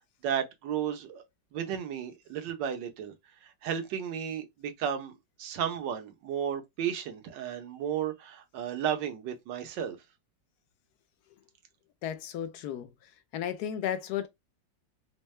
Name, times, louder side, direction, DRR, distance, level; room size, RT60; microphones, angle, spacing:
voice 1, 0.2-1.2 1.5-3.1 3.4-10.0, right 9 dB, 75° right, 1.5 m, -33 dB
voice 2, 12.0-12.9 13.3-14.3, left 9 dB, 70° left, 1.1 m, -33 dB
4.5 x 2.1 x 3.2 m
omnidirectional pair, 1.9 m